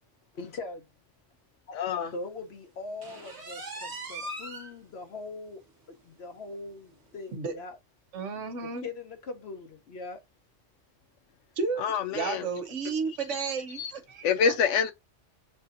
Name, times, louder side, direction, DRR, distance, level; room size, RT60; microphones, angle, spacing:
voice 1, 0.3-0.9 2.1-5.6 6.0-7.8 8.6-10.2, left 3 dB, 65° left, 1.0 m, -41 dB
voice 2, 1.7-2.1 11.8-12.5 13.8-13.9 14.2-14.9, left 6 dB, 90° left, 1.0 m, -26 dB
sound 1, 3.0-4.7 5.2-5.3 5.7-5.8 6.2-6.3 7.2-7.3, right 1 dB, 60° right, 1.4 m, -39 dB
voice 3, 8.1-8.9 11.6-11.9 12.1-14.5, right 5 dB, 80° right, 1.1 m, -32 dB
6.5 x 2.7 x 2.4 m
omnidirectional pair, 1.2 m